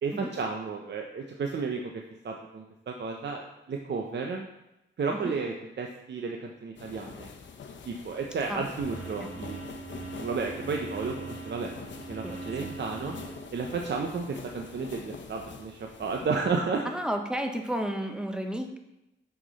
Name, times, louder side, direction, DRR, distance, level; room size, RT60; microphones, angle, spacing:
voice 1, 0.0-4.5 5.0-7.3 7.9-9.6 10.2-11.8 12.1-13.1 13.5-16.8, right 4 dB, 60° right, 2 dB, 0.8 m, -32 dB
sound 1, 6.8-16.6, left 5 dB, 65° left, 0.9 m, -45 dB
sound 2, 8.8-13.9, right 3 dB, 45° right, 2.2 m, -42 dB
voice 2, 16.8-18.8, equal, 5° right, 4 dB, 0.9 m, -32 dB
6.2 x 6.0 x 4.1 m, 0.90 s
cardioid pair, 75°, 21 cm